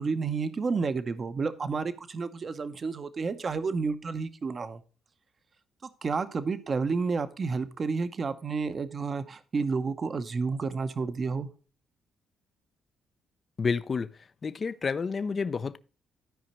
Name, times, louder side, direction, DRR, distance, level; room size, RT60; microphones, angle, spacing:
voice 1, 0.0-4.8 5.8-11.5, right 4 dB, 40° right, 0.8 m, -30 dB
voice 2, 13.6-14.1 14.4-15.8, left 5 dB, 40° left, 0.5 m, -29 dB
12.5 x 5.0 x 4.2 m
cardioid pair, 90°, 0 cm